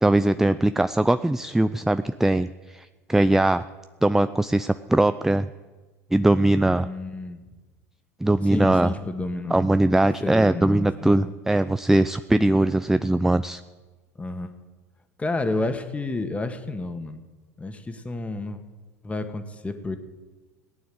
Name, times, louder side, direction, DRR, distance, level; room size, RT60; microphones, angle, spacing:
voice 1, 0.0-3.6 4.0-5.5 6.1-6.9 8.2-8.9 9.5-13.6, right 1 dB, 5° right, 13 dB, 0.5 m, -21 dB
voice 2, 6.8-7.4 8.5-9.7 10.2-11.3 14.2-14.5 15.2-17.2 17.6-18.6 19.0-20.0, left 2 dB, 15° left, 8 dB, 1.8 m, -30 dB
18.0 x 9.4 x 7.8 m, 1.3 s
hypercardioid pair, 75°, 8 cm